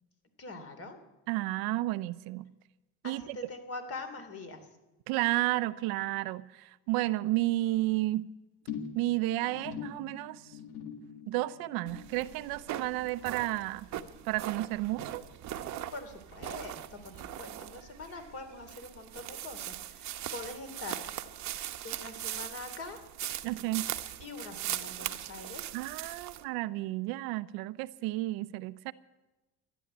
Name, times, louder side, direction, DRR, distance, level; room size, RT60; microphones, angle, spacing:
voice 1, 0.4-1.0 3.0-4.7 15.9-21.0 21.8-23.0 24.2-25.6, left 3 dB, 40° left, 3.0 m, -43 dB
voice 2, 1.3-2.4 3.0-3.4 5.1-8.3 8.9-10.5 11.3-13.9 14.2-15.2 23.4-23.9 25.7-28.9, right 18 dB, 75° right, 0.7 m, -32 dB
sound 1, 8.7-15.3 15.5-16.0 16.3-16.4, left 7 dB, 80° left, 1.9 m, -45 dB
sound 2, 11.9-26.4, right 12 dB, 50° right, 1.0 m, -40 dB
14.0 x 11.0 x 8.8 m
cardioid pair, 120°, 37 cm